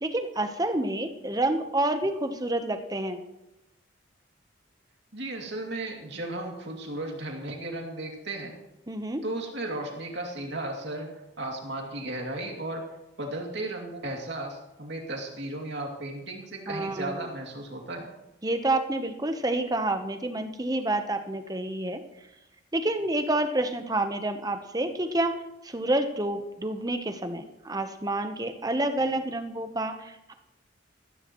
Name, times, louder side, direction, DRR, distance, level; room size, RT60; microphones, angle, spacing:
voice 1, 0.0-3.2 8.9-9.2 16.7-17.2 18.4-22.0 22.7-25.3 25.6-30.3, right 1 dB, 20° right, 7 dB, 0.9 m, -28 dB
voice 2, 5.1-8.5 9.2-11.1 11.4-12.9 13.2-18.1, right 2 dB, 55° right, 1 dB, 2.6 m, -35 dB
14.5 x 14.0 x 3.1 m, 0.95 s
head